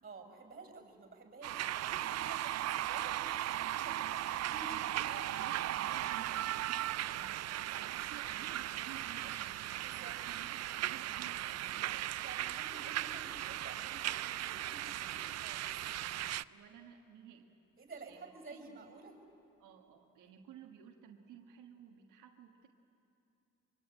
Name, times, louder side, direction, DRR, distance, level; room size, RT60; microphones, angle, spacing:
voice 1, 0.0-5.3 9.8-10.2 12.2-15.8 17.8-19.2, right 3 dB, 30° right, 4 dB, 5.9 m, -52 dB
sound 1, 1.4-16.4, right 13 dB, 60° right, 0.5 m, -37 dB
voice 2, 4.7-9.6 10.1-12.2 16.0-17.6 18.0-19.0 19.6-22.7, right 8 dB, 90° right, 2 dB, 1.5 m, -55 dB
24.5 x 24.0 x 8.9 m, 2.8 s
cardioid pair, 90°, 30 cm